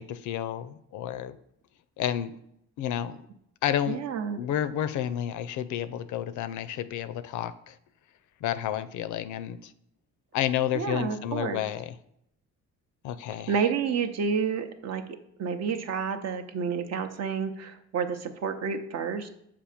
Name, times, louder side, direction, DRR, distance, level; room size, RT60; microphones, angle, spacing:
voice 1, 0.0-1.4 2.0-2.4 2.8-3.2 3.6-4.0 4.4-7.8 8.4-9.7 10.3-11.9 13.0-13.5, left 10 dB, 80° left, 12 dB, 0.4 m, -30 dB
voice 2, 3.9-4.4 10.7-11.6 13.5-15.0 15.4-19.3, right 6 dB, 60° right, 8 dB, 0.7 m, -30 dB
6.8 x 2.5 x 5.6 m, 0.74 s
cardioid pair, 85°, 29 cm